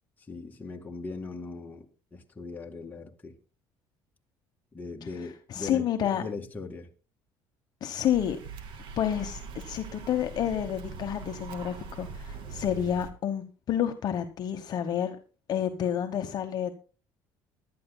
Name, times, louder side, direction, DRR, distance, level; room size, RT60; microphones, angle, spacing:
voice 1, 0.2-3.4 4.7-6.9, left 3 dB, 20° left, 2.2 m, -40 dB
voice 2, 5.5-6.2 7.8-8.4 9.0-15.2 15.5-16.7, left 9 dB, 50° left, 1.1 m, -29 dB
sound 1, 8.0-13.1, right 5 dB, 65° right, 2.2 m, -42 dB
23.5 x 12.0 x 2.2 m
cardioid pair, 120°, 9 cm